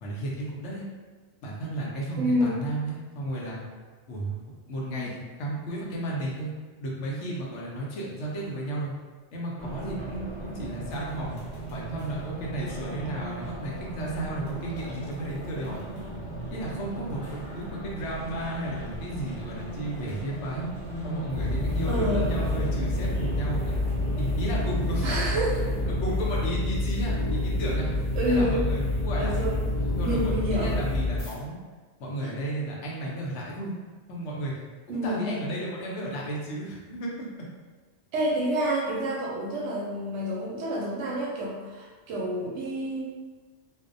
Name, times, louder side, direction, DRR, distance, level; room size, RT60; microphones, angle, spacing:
voice 1, 0.0-0.8 1.4-3.6 4.1-4.4 4.7-5.1 5.4-6.5 6.8-8.9 9.3-11.4 11.7-15.8 16.5-20.7 21.0-23.8 24.2-25.2 26.0-27.9 28.3-29.4 29.8-31.6 32.0-33.7 34.1-34.5 34.9-37.1, right 1 dB, 85° left, -4 dB, 0.9 m, -33 dB
voice 2, 2.2-2.6 4.9-5.1 21.9-22.3 25.0-25.7 28.2-28.6 29.2-29.6 30.0-30.8 32.2-32.3 34.9-35.4 38.1-43.0, equal, 85° right, -5 dB, 0.9 m, -28 dB
Race car auto racing, 9.6-26.2, right 1 dB, 50° right, 0.6 m, -38 dB
sound 1, 10.9-30.8, left 2 dB, 60° left, 0.6 m, -51 dB
sound 2, 21.3-31.3, left 1 dB, 20° right, 1.0 m, -28 dB
2.5 x 2.1 x 2.5 m, 1.4 s
omnidirectional pair, 1.2 m